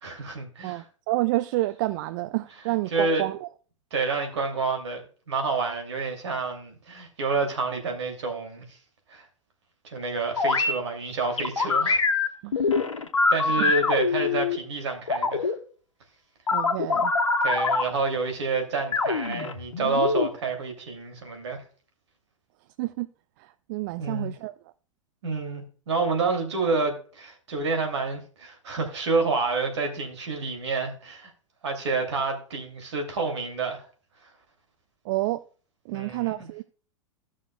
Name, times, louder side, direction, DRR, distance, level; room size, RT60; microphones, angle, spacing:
voice 1, 0.0-0.8 2.9-3.3 3.9-5.0 5.3-8.8 9.1-9.3 9.8-12.0 12.6-12.7 13.3-15.5 17.4-21.6 24.0-24.3 25.2-31.3 31.6-33.8 35.9-36.5, right 4 dB, 60° right, 2.6 m, -28 dB
voice 2, 0.6-3.5 12.4-12.5 13.6-13.7 16.5-17.1 22.8-23.1 23.4-24.7 35.0-35.4 35.8-36.6, right 19 dB, 40° right, 0.4 m, -29 dB
sound 1, 10.4-10.7 11.4-14.6 15.1-15.5 16.5-17.8 18.9-20.3, left 4 dB, 70° left, 1.3 m, -24 dB
15.5 x 6.3 x 2.2 m
figure-of-eight pair, 95°, 16 cm